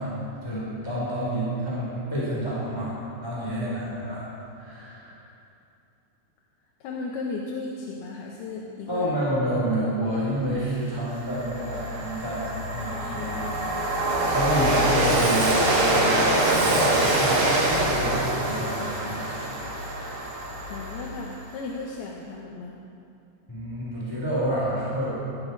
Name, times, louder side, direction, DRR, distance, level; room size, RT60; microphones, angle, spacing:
voice 1, 0.0-5.2 8.9-19.6 23.5-25.2, right 1 dB, 5° left, -7 dB, 2.7 m, -29 dB
voice 2, 6.8-9.1 20.7-22.8, left 3 dB, 70° left, -2 dB, 2.7 m, -35 dB
Train, 10.6-10.7 11.1-21.5, right 1 dB, 45° right, 1.8 m, -24 dB
18.0 x 13.0 x 4.7 m, 2.6 s
omnidirectional pair, 5.2 m